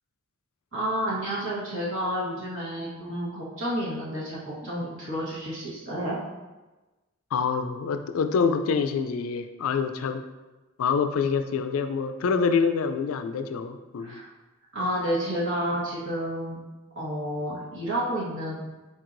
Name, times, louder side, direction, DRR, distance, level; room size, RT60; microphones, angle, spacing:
voice 1, 0.7-6.2 14.0-14.3 14.7-16.6 16.9-18.6, equal, 60° right, -8 dB, 1.1 m, -30 dB
voice 2, 7.3-10.2 10.8-14.2, left 5 dB, 80° left, 8 dB, 0.4 m, -26 dB
4.5 x 4.1 x 2.6 m, 1.1 s
head